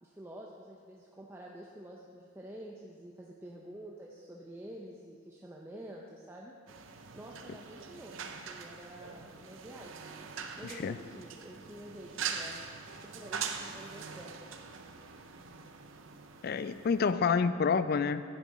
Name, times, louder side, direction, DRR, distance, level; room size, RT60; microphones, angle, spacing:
voice 1, 0.0-6.5 7.1-10.1 10.6-12.6 13.1-14.4, right 1 dB, 10° right, -3 dB, 0.5 m, -48 dB
sound 1, 6.7-17.1, right 6 dB, 65° right, 0.6 m, -43 dB
voice 2, 10.6-11.0 16.4-18.2, left 5 dB, 45° left, 13 dB, 0.3 m, -28 dB
9.9 x 8.2 x 4.2 m, 2.2 s
head